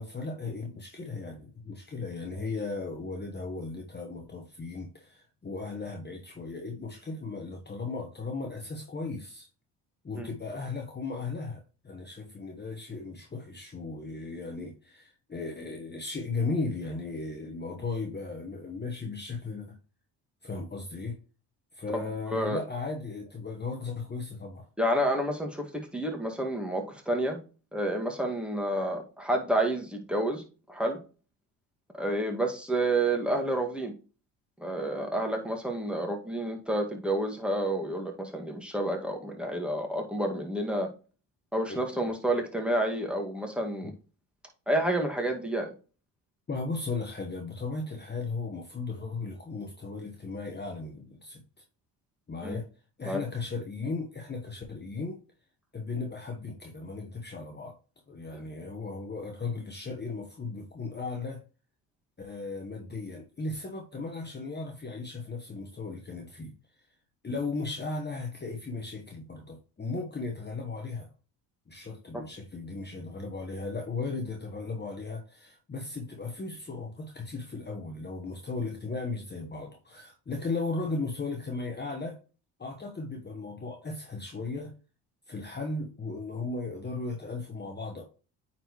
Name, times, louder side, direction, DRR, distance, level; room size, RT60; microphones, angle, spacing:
voice 1, 0.0-9.5 10.0-19.8 20.4-21.2 21.7-24.7 41.7-41.8 43.8-43.9 46.5-51.4 52.3-52.7 53.0-55.2 55.7-57.7 58.1-61.4 62.2-66.5 67.2-71.1 71.7-82.2 82.6-84.7 85.3-88.0, left 3 dB, 20° left, 1.3 m, -36 dB
voice 2, 22.3-22.6 24.8-27.4 27.7-30.4 30.7-31.0 31.9-33.9 34.6-40.9 41.5-43.9 44.7-45.7 52.4-52.6 53.0-53.2 58.3-58.4 72.1-72.2, right 1 dB, ahead, 2.0 m, -29 dB
8.9 x 4.3 x 3.1 m
hypercardioid pair, 60°, 45 cm